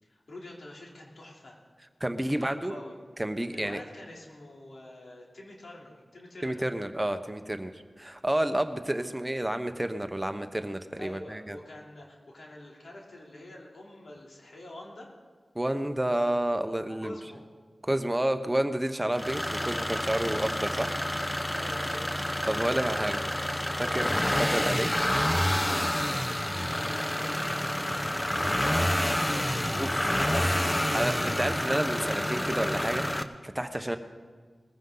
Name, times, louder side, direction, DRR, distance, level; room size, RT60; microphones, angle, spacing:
voice 1, 0.0-1.6 2.4-2.9 3.5-6.6 11.0-15.1 16.9-17.4 21.0-22.3 22.9-23.3 23.7-24.0 25.7-31.4 33.7-33.9, left 1 dB, 80° left, -2 dB, 3.3 m, -47 dB
voice 2, 2.0-2.7 3.2-3.8 6.4-11.6 15.5-17.1 17.8-20.9 22.4-23.2 23.9-24.9 29.7-29.9 30.3-30.4 30.9-34.0, right 1 dB, 15° right, 8 dB, 1.0 m, -30 dB
sound 1, 19.1-33.2, left 1 dB, 20° left, 0.9 m, -28 dB
21.0 x 15.0 x 3.9 m, 1.5 s
cardioid pair, 50°, 0 cm